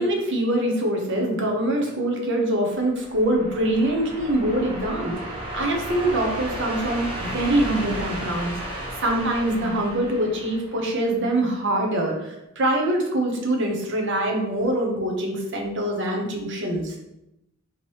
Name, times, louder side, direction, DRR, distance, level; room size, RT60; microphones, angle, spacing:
voice 1, 0.0-5.1 5.5-8.5 9.0-16.9, right 1 dB, 60° right, 1 dB, 1.0 m, -24 dB
sound 1, 2.8-11.2, right 1 dB, 25° right, 1.5 m, -34 dB
3.7 x 3.1 x 4.5 m, 0.86 s
head